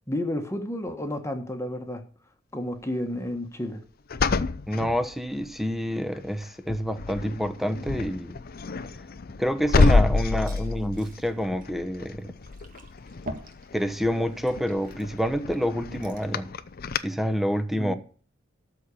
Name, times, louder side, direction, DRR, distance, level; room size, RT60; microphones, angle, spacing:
voice 1, 0.1-2.0 2.5-3.8 17.8-17.9, left 1 dB, 15° left, 1.3 m, -31 dB
sound 1, 4.1-5.6 6.1-6.4 6.7-17.0, left 3 dB, 50° left, 0.6 m, -28 dB
voice 2, 4.7-8.4 9.4-12.3 13.7-16.5 17.0-17.9, equal, ahead, 0.9 m, -27 dB
Liquid, 9.3-16.4, right 1 dB, 45° right, 1.7 m, -46 dB
13.0 x 4.4 x 8.3 m
head